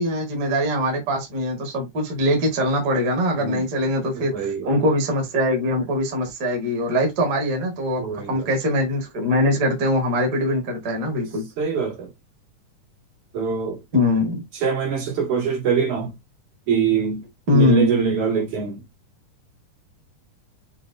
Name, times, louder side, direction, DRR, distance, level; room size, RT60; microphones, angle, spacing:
voice 1, 0.0-11.5 13.9-14.4 17.5-17.9, left 1 dB, 40° right, 1.7 m, -22 dB
voice 2, 4.1-4.7 8.0-8.5 11.6-12.1 13.3-13.8 14.5-16.1 16.7-17.2 17.5-18.8, right 6 dB, 65° right, 3.4 m, -23 dB
6.8 x 3.0 x 2.5 m
omnidirectional pair, 3.7 m